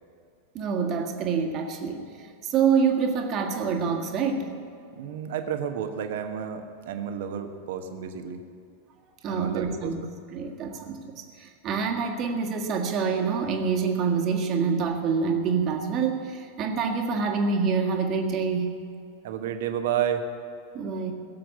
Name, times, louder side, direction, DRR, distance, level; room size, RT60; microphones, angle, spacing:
voice 1, 0.5-2.0 2.4-4.5 9.2-10.0 10.3-18.7 20.7-21.1, right 5 dB, 35° right, 3 dB, 1.7 m, -26 dB
voice 2, 5.0-8.4 9.3-9.9 19.2-20.2, right 9 dB, 55° right, 7 dB, 1.2 m, -31 dB
17.0 x 7.7 x 8.4 m, 2.5 s
figure-of-eight pair, 90°, 0 cm